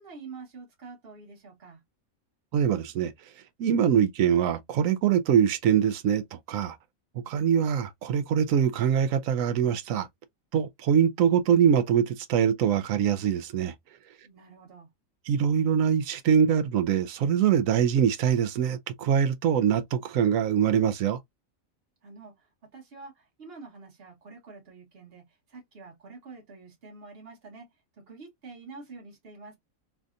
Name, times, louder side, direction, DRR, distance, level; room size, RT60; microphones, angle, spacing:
voice 1, 0.0-1.8 14.2-14.9 22.0-29.6, right 4 dB, 45° right, 1.5 m, -47 dB
voice 2, 2.5-3.1 3.6-6.8 7.3-10.1 10.5-13.7 15.3-21.2, right 8 dB, 75° right, 0.9 m, -23 dB
3.3 x 2.5 x 2.4 m
omnidirectional pair, 1.4 m